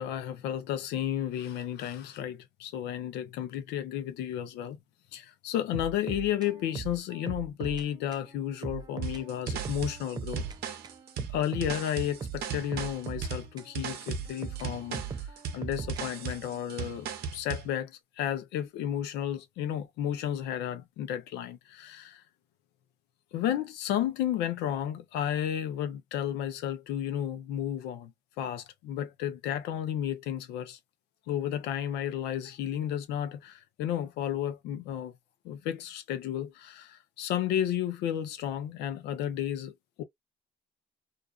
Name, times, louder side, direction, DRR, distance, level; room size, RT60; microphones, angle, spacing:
voice 1, 0.0-4.8 5.1-10.4 11.3-15.0 15.5-22.2 23.3-28.1 28.4-30.8 31.3-35.1 35.4-40.0, left 10 dB, 90° left, 0.5 m, -32 dB
sound 1, 5.7-8.3 8.6-10.6 10.8-13.7 14.1-16.6, right 6 dB, 25° right, 0.4 m, -39 dB
sound 2, 9.0-17.7, right 6 dB, 65° right, 0.7 m, -37 dB
2.5 x 2.3 x 2.2 m
cardioid pair, 110°, 17 cm